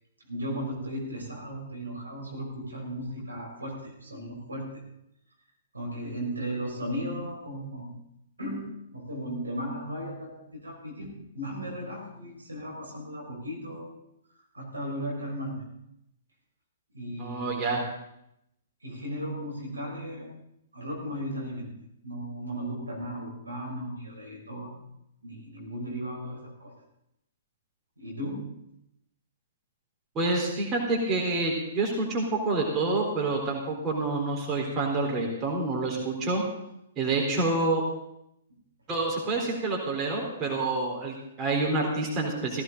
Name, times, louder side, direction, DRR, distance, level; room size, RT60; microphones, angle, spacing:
voice 1, 0.2-4.8 5.7-7.9 8.4-13.9 14.5-15.6 16.9-17.5 18.8-20.3 20.7-21.7 22.0-24.9 25.2-26.7 28.0-28.6, equal, 85° right, -1 dB, 5.6 m, -36 dB
voice 2, 17.2-17.8 30.2-36.4 37.0-37.8 38.9-42.6, right 3 dB, 25° right, -1 dB, 4.0 m, -28 dB
17.0 x 15.5 x 4.0 m, 0.81 s
figure-of-eight pair, 115°, 0 cm